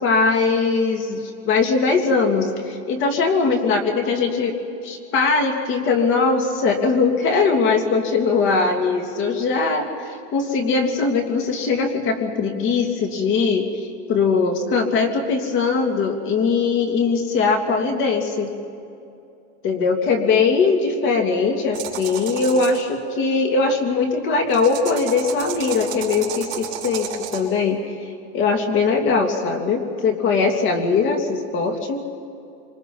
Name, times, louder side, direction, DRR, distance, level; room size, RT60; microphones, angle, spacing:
voice 1, 0.0-4.5 4.8-18.5 19.6-27.9 28.3-32.0, left 4 dB, 35° left, 4 dB, 2.8 m, -21 dB
sound 1, 21.7-22.8 24.5-27.4, right 9 dB, 35° right, 4.7 m, -32 dB
26.5 x 26.5 x 5.6 m, 2.6 s
supercardioid pair, 160°, 35 cm